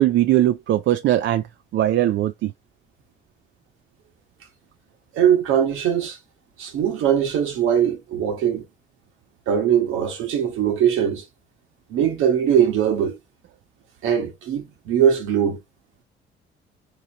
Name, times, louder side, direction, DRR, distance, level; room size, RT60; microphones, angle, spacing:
voice 1, 0.0-1.4 1.7-2.5, right 13 dB, 70° right, 0.4 m, -19 dB
voice 2, 5.1-6.2 6.6-8.6 9.5-11.2 11.9-13.2 14.0-15.6, right 9 dB, 90° right, 1.2 m, -21 dB
3.9 x 2.9 x 2.8 m
cardioid pair, 90°, 20 cm